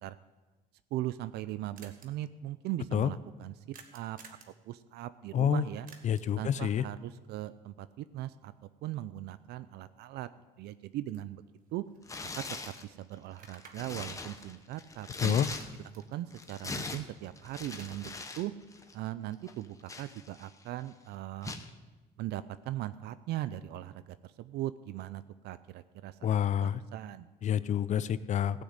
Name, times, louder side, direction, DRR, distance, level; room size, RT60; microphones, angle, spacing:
sound 1, 0.8-0.9 1.1-1.2 1.4-1.5 1.8-2.1 3.7-4.6 5.9-6.4 10.6-10.7 11.1-12.2 12.6-12.7 13.3-15.0 15.3-17.2 17.4-18.3, right 6 dB, 55° right, 1.5 m, -56 dB
voice 1, 0.9-4.4 4.7-5.9 6.4-8.5 8.8-10.3 10.6-11.4 11.7-11.8 12.4-15.4 16.1-18.5 18.9-21.5 22.2-27.3, right 14 dB, 75° right, 14 dB, 0.5 m, -39 dB
voice 2, 5.3-5.7 6.0-6.8 15.2-15.5 26.2-26.8 27.4-28.6, left 9 dB, 45° left, 16 dB, 0.5 m, -28 dB
Tearing, 12.0-12.8 13.4-16.0 16.3-18.5 18.7-18.9 19.5-20.6 21.4-21.7, left 3 dB, 20° left, 1.1 m, -41 dB
15.5 x 6.4 x 8.0 m, 1.2 s
cardioid pair, 110°, 17 cm